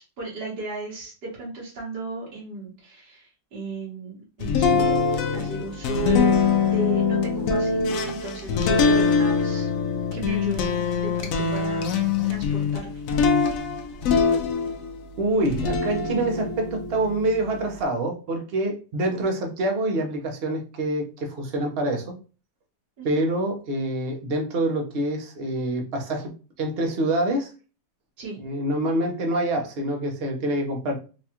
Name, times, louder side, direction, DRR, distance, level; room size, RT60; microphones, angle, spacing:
voice 1, 0.0-5.0 5.3-7.8 8.0-9.7 10.1-12.0 12.3-13.0 23.0-23.2 28.2-28.4, right 3 dB, 70° right, -6 dB, 2.0 m, -35 dB
sound 1, 4.4-15.0 15.4-17.8, left 5 dB, 70° left, 0.8 m, -23 dB
voice 2, 15.2-22.1 23.0-26.3 26.6-27.5 28.4-30.9, right 1 dB, 50° right, 2 dB, 0.7 m, -26 dB
4.1 x 2.3 x 2.8 m, 0.35 s
omnidirectional pair, 1.9 m